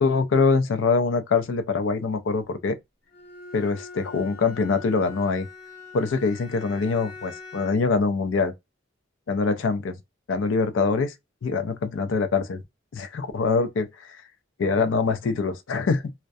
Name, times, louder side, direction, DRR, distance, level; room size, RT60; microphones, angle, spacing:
voice 1, 0.0-2.8 3.5-5.5 5.9-8.5 9.3-10.0 10.3-11.1 11.4-12.6 12.9-13.9 14.6-16.1, left 4 dB, 70° left, 0.4 m, -24 dB
Bowed string instrument, 3.1-8.0, left 4 dB, 45° left, 0.9 m, -43 dB
2.2 x 2.1 x 2.5 m
head